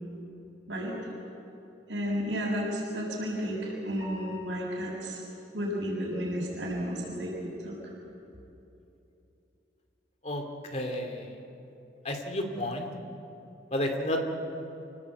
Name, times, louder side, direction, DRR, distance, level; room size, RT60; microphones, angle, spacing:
voice 1, 1.9-5.2 5.5-7.8, equal, 80° right, -3 dB, 6.7 m, -32 dB
sound 1, 4.0-5.0, left 1 dB, 55° left, 7.5 m, -45 dB
voice 2, 10.7-11.3 12.0-12.9 13.7-14.2, left 1 dB, 40° left, 3 dB, 2.5 m, -31 dB
27.5 x 18.0 x 8.3 m, 2.8 s
head